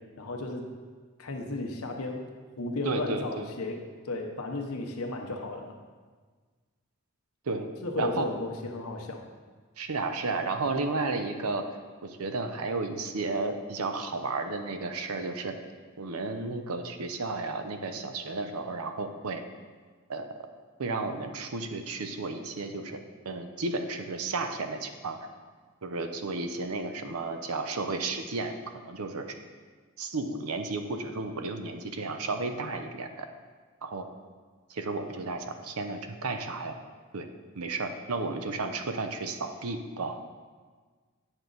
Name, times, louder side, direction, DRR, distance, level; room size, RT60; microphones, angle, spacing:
voice 1, 0.2-0.6 1.2-2.2 2.6-5.8 7.8-9.2, left 2 dB, 85° left, 3 dB, 1.0 m, -34 dB
voice 2, 2.8-3.5 7.5-7.7 8.0-8.3 9.8-11.6 12.0-15.5 16.0-19.4 20.1-20.2 20.8-23.0 23.3-25.3 25.8-28.5 28.8-29.3 30.0-33.3 33.8-34.1 34.7-36.7 37.1-37.3 37.5-40.2, right 3 dB, 90° right, 7 dB, 0.7 m, -33 dB
8.8 x 6.2 x 4.0 m, 1.5 s
head